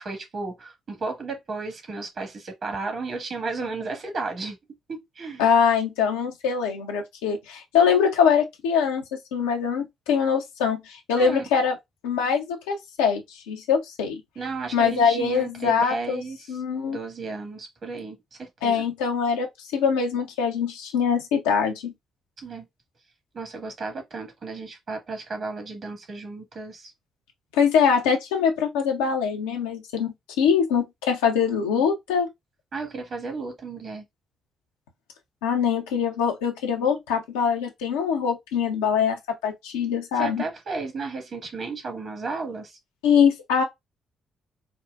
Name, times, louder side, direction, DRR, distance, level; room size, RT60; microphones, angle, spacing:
voice 1, 0.0-4.6 4.9-5.4 11.2-11.4 14.3-16.6 16.9-18.8 22.4-22.6 23.3-26.9 32.7-34.0 40.1-42.8, right 3 dB, 50° right, 1.6 m, -33 dB
voice 2, 5.4-11.8 12.0-13.2 13.5-14.2 14.7-16.2 16.5-17.0 18.6-21.9 27.5-32.3 35.4-40.4 43.0-43.6, left 6 dB, 80° left, 0.7 m, -23 dB
4.7 x 2.2 x 2.4 m
hypercardioid pair, 40°, 0 cm